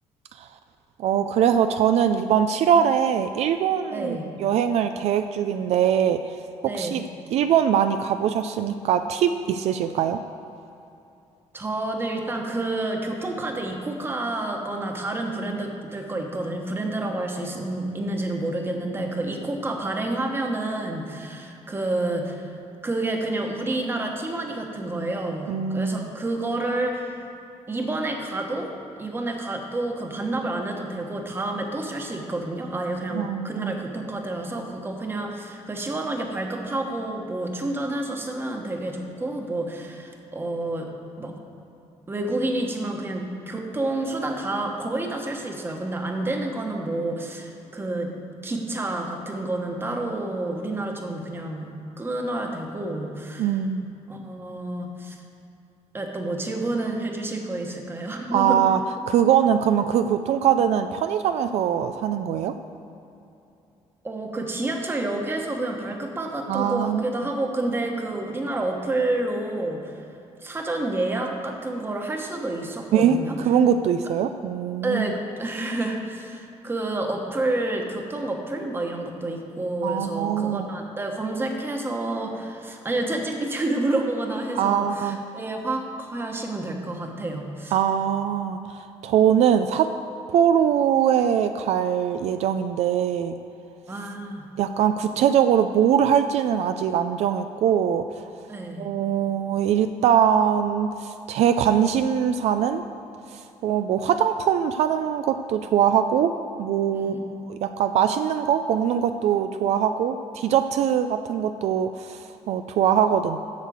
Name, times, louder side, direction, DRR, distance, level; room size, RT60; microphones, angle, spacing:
voice 1, 1.0-6.4 6.6-7.0 7.3-10.2 25.5-26.1 33.1-33.7 53.4-53.9 58.3-58.8 59.1-62.5 66.5-67.0 72.9-73.2 73.5-75.1 79.8-80.7 84.6-85.2 87.7-89.9 90.3-93.4 94.6-98.2 98.8-102.8 103.3-106.3 106.6-107.1 107.5-113.4, right 9 dB, 70° right, 9 dB, 0.4 m, -22 dB
voice 2, 3.9-4.2 6.6-6.9 11.5-27.3 27.7-28.7 29.0-40.9 41.2-41.4 42.1-48.1 48.4-51.7 52.0-53.6 54.1-55.2 55.9-58.6 64.0-70.0 70.4-73.4 74.8-87.8 93.9-94.5 98.5-98.9 106.9-107.2, right 2 dB, 20° right, 2 dB, 1.2 m, -29 dB
8.4 x 6.6 x 7.7 m, 2.7 s
cardioid pair, 135°, 11 cm